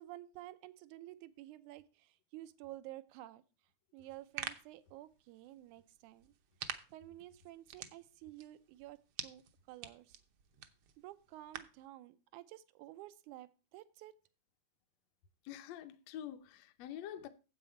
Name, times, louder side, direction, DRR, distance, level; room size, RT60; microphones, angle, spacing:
voice 1, 0.0-3.4 3.9-6.3 6.6-9.4 9.7-10.2 11.0-14.2, right 15 dB, 85° right, 2.2 m, -52 dB
sound 1, 4.0-11.9, right 9 dB, 70° right, 1.3 m, -49 dB
voice 2, 15.5-17.3, left 10 dB, 70° left, 1.8 m, -46 dB
9.3 x 7.9 x 4.4 m
omnidirectional pair, 3.5 m